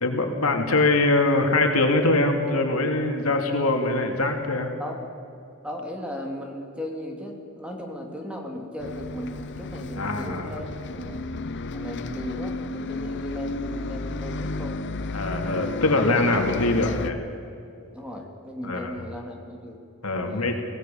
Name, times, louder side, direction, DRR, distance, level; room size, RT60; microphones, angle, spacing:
voice 1, 0.0-4.7 10.0-10.5 15.1-17.2 18.6-18.9 20.0-20.6, left 2 dB, 75° left, 3 dB, 2.8 m, -23 dB
voice 2, 5.6-11.3 11.7-14.8 17.9-19.8 20.2-20.5, left 1 dB, 5° right, 1 dB, 2.9 m, -36 dB
Bus, 8.8-17.1, left 2 dB, 55° left, 0.8 m, -32 dB
25.0 x 18.0 x 7.1 m, 2.6 s
head